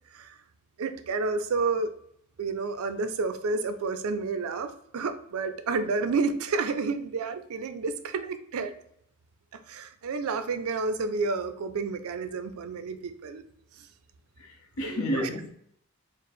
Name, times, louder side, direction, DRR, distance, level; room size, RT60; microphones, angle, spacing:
voice 1, 0.8-1.9 2.4-8.7 9.5-13.4 13.8-13.9 14.8-15.3, right 4 dB, 80° right, 0.4 m, -30 dB
voice 2, 14.4-15.5, equal, 80° left, 0.8 m, -31 dB
4.5 x 2.0 x 3.4 m
head